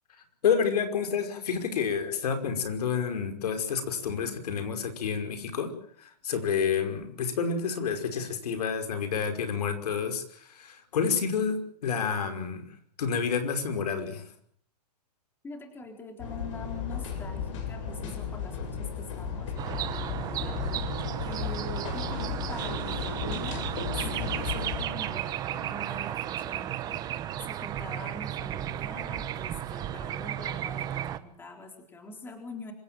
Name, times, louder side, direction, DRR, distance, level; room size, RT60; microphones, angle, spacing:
voice 1, 0.4-5.7 6.0-12.6 13.0-14.2, left 6 dB, 70° left, 7 dB, 5.5 m, -29 dB
voice 2, 15.4-20.6 21.2-23.7 24.1-27.0 27.5-32.7, left 2 dB, 10° left, 4 dB, 3.9 m, -43 dB
sound 1, 16.2-24.9, left 6 dB, 50° left, 7.9 m, -34 dB
sound 2, 19.6-31.2, right 11 dB, 20° right, 1.1 m, -34 dB
26.0 x 16.5 x 9.1 m, 0.63 s
hypercardioid pair, 160°, 21 cm